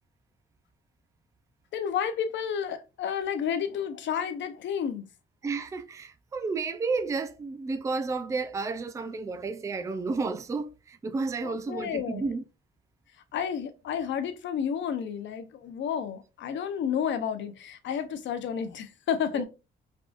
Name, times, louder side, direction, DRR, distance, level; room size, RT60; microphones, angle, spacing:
voice 1, 1.7-5.1 11.4-12.3 13.3-19.5, left 8 dB, 65° left, 0.6 m, -31 dB
voice 2, 5.4-12.4 19.3-19.4, right 4 dB, 15° right, 0.3 m, -31 dB
3.5 x 2.3 x 2.4 m
cardioid pair, 90°, 20 cm